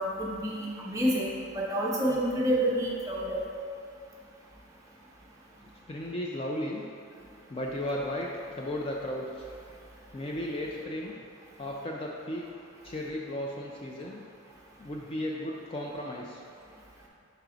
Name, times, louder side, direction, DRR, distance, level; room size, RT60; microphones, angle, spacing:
voice 1, 0.0-3.4, right 1 dB, 15° right, -4 dB, 0.8 m, -28 dB
voice 2, 5.6-6.8 7.5-9.5 10.1-11.1 11.6-12.5 12.8-14.2 14.8-16.4, left 1 dB, 25° left, -1 dB, 0.3 m, -35 dB
5.7 x 4.7 x 3.8 m, 2.3 s
head